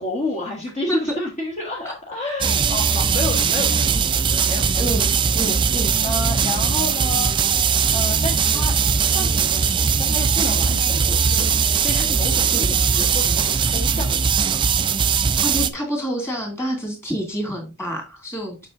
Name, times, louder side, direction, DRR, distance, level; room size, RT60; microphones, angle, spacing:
voice 1, 0.0-5.1 6.0-7.3 7.9-8.8 9.1-14.6, left 2 dB, 30° left, -3 dB, 1.4 m, -30 dB
sound 1, 2.4-15.7, right 6 dB, 20° right, 0.4 m, -20 dB
voice 2, 5.3-5.9 12.5-12.7 15.4-18.7, equal, 10° left, 2 dB, 2.6 m, -27 dB
7.4 x 5.5 x 3.8 m, 0.28 s
head